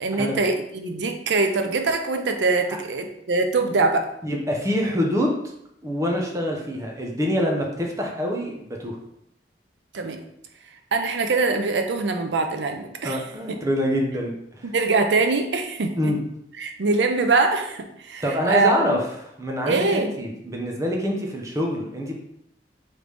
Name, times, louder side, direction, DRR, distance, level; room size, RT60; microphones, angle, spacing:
voice 1, 0.0-4.1 9.9-10.2 10.9-13.2 14.6-16.1 16.6-19.0 19.7-20.1, right 3 dB, 80° right, 6 dB, 0.5 m, -23 dB
voice 2, 4.2-5.4 5.8-9.0 13.0-14.7 16.0-16.2 18.2-22.1, equal, 20° right, 0 dB, 0.7 m, -25 dB
3.9 x 3.2 x 3.3 m, 0.77 s
head